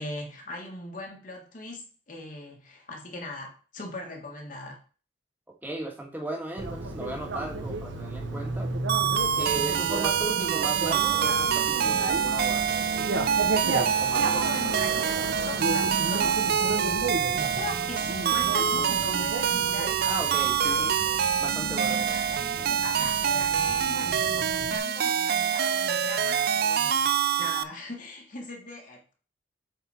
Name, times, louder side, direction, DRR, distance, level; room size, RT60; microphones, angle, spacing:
voice 1, 0.0-4.8 14.0-20.9 21.9-27.1 27.4-29.1, left 2 dB, 45° left, 1.5 m, -40 dB
voice 2, 5.6-8.7 9.3-12.7 14.0-14.4 14.7-14.8 20.1-21.0 21.4-22.0, right 1 dB, 10° right, 1.5 m, -36 dB
Bicycle, 6.6-24.8, right 2 dB, 80° right, 0.9 m, -33 dB
sound 1, 8.9-27.6, right 8 dB, 55° right, 0.4 m, -26 dB
7.8 x 4.0 x 4.2 m
head